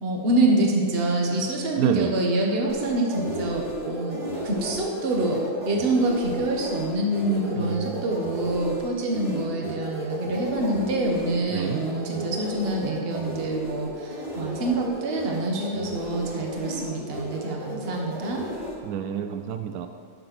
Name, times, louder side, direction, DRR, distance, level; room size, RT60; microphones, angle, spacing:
voice 1, 0.0-18.4, right 2 dB, 40° right, 0 dB, 1.4 m, -26 dB
voice 2, 1.8-2.1 7.6-8.0 11.5-11.8 18.8-19.9, right 9 dB, 80° right, 7 dB, 1.1 m, -29 dB
sound 1, 2.7-18.7, equal, 25° right, 1.9 m, -34 dB
9.7 x 6.8 x 6.0 m, 2.1 s
omnidirectional pair, 1.6 m